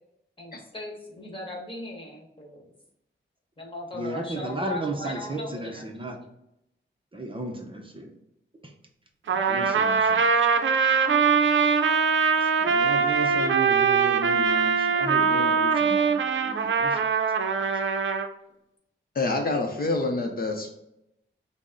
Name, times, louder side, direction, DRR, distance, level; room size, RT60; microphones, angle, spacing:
voice 1, 0.4-2.6 3.6-5.9, left 1 dB, 25° left, 0 dB, 1.3 m, -38 dB
voice 2, 3.9-6.2 7.1-8.2 8.6-8.7 9.3-10.3 12.2-17.0, right 2 dB, 25° right, 2 dB, 0.6 m, -34 dB
Trumpet, 9.3-18.3, right 6 dB, 70° right, 0.5 m, -22 dB
voice 3, 19.1-20.7, left 2 dB, 50° left, 2 dB, 0.6 m, -26 dB
6.1 x 2.1 x 3.7 m, 0.82 s
wide cardioid pair, 115°, 20 cm